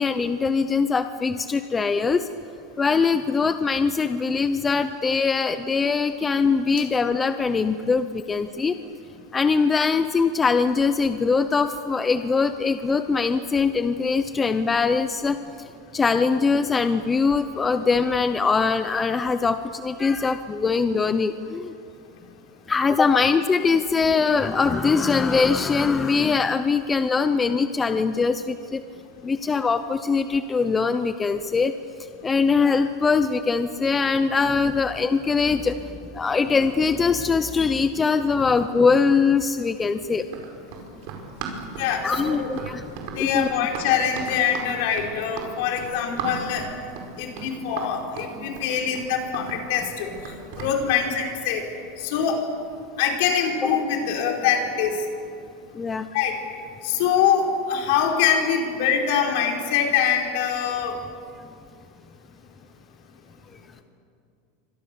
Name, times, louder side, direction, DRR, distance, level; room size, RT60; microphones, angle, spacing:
voice 1, 0.0-2.3 2.8-8.8 9.3-15.4 15.9-21.7 22.7-28.8 29.2-31.7 32.2-35.8 36.1-40.2 42.0-42.8 43.2-43.5 55.7-56.1, left 5 dB, 15° left, 10 dB, 0.6 m, -22 dB
Run, 40.2-50.8, right 5 dB, 55° right, 5.1 m, -36 dB
voice 2, 41.8-42.5 43.1-46.6 47.2-50.1 50.5-51.6 52.0-52.4 53.0-54.9 56.1-56.4 56.8-60.9, left 8 dB, 60° left, 1 dB, 4.8 m, -24 dB
28.5 x 25.0 x 7.0 m, 2.5 s
supercardioid pair, 165°, 0 cm